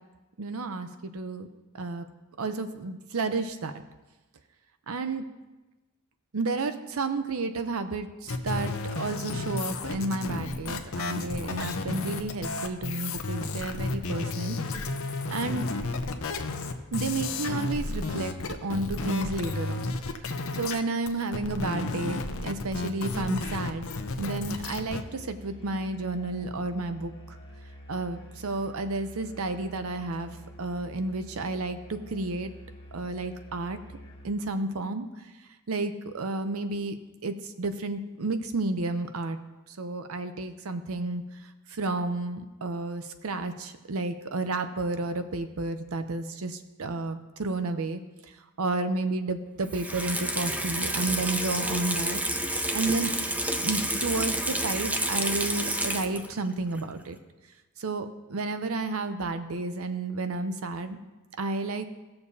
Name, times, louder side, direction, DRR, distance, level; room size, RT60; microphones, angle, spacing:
voice 1, 0.4-1.5 1.7-2.0 2.4-3.7 4.9-5.3 6.3-14.6 15.3-15.7 16.9-18.3 18.6-19.9 20.5-23.9 24.2-27.4 27.9-32.5 32.9-33.8 34.2-35.1 35.7-37.0 37.2-39.4 39.7-41.2 41.7-48.0 48.6-52.2 52.5-53.1 53.6-57.2 57.8-61.0 61.4-61.9, right 3 dB, 75° right, 9 dB, 0.7 m, -31 dB
sound 1, 8.3-20.8 21.1-25.0, left 3 dB, 70° left, 0.7 m, -32 dB
Musical instrument, 24.5-34.4, equal, 25° left, 1.5 m, -47 dB
Water tap faucet / Sink (filling or washing), 49.7-56.4 56.7-56.8, right 1 dB, 5° right, 0.5 m, -29 dB
16.5 x 6.7 x 2.8 m, 1.1 s
head